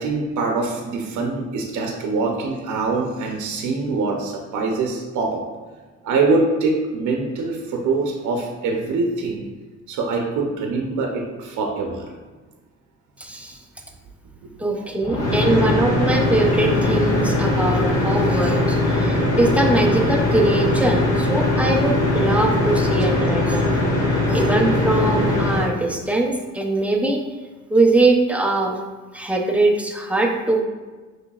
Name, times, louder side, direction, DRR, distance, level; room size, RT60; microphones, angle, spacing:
voice 1, 0.0-5.4 6.0-9.4 9.9-12.1 15.5-15.7, right 3 dB, 75° right, 1 dB, 0.7 m, -24 dB
voice 2, 13.2-13.6 14.6-23.7 24.3-27.2 27.7-28.8 29.1-30.6, right 2 dB, 5° right, 1 dB, 0.6 m, -21 dB
sound 1, 15.0-25.7, left 2 dB, 55° left, 1.4 m, -20 dB
5.7 x 3.2 x 2.4 m, 1.3 s
cardioid pair, 90°, 30 cm